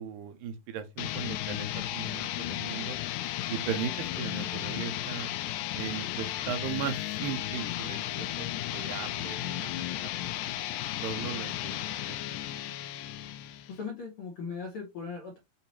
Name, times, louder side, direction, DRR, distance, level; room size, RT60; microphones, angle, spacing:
voice 1, 0.0-3.0 3.5-5.3 5.8-8.5 8.7-10.1 11.0-12.2, right 8 dB, 85° right, 2.3 m, -37 dB
sound 1, 1.0-13.8, left 13 dB, 90° left, 2.3 m, -34 dB
voice 2, 13.4-15.4, left 5 dB, 65° left, 1.4 m, -39 dB
6.8 x 2.7 x 2.9 m
omnidirectional pair, 3.9 m